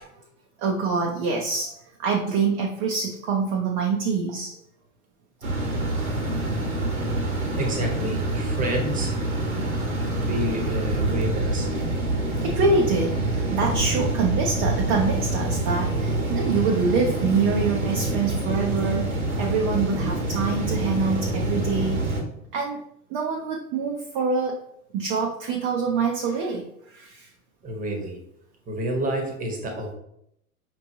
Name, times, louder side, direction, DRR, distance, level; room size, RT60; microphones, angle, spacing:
voice 1, 0.6-4.6 9.5-9.8 12.4-22.1 22.5-22.8 23.1-24.6 24.9-27.3, right 4 dB, 35° right, 0 dB, 0.5 m, -25 dB
sound 1, 5.4-22.2, right 2 dB, 75° right, 1.2 m, -26 dB
voice 2, 7.6-9.2 10.1-11.7 27.6-28.2 28.7-29.9, right 1 dB, 20° right, 3 dB, 1.0 m, -29 dB
5.2 x 3.0 x 2.7 m, 0.74 s
figure-of-eight pair, 90°, 43 cm